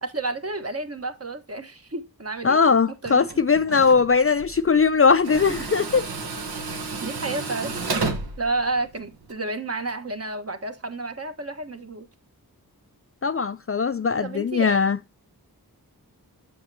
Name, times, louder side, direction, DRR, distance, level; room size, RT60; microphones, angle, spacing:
voice 1, 0.0-2.6 2.9-3.3 5.3-5.6 6.7-7.7 8.4-12.1 14.2-14.8, right 2 dB, 40° right, 1.3 m, -31 dB
voice 2, 2.4-6.0 13.2-15.0, left 5 dB, 40° left, 0.4 m, -20 dB
Tools, 3.1-9.3, right 3 dB, 80° right, 1.2 m, -33 dB
7.6 x 7.3 x 2.8 m
wide cardioid pair, 55°, 37 cm